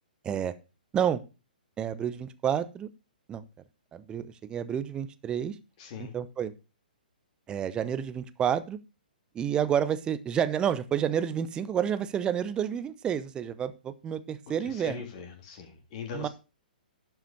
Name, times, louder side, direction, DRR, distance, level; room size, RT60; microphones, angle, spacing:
voice 1, 0.2-0.5 0.9-1.2 1.8-2.9 3.3-3.4 3.9-5.6 6.0-6.5 7.5-8.8 9.3-15.0 16.1-16.3, right 9 dB, 15° right, 14 dB, 0.8 m, -29 dB
voice 2, 5.8-6.1 14.6-16.3, left 6 dB, 40° left, 4 dB, 3.3 m, -40 dB
11.5 x 5.9 x 5.3 m, 0.30 s
figure-of-eight pair, 120°, 5 cm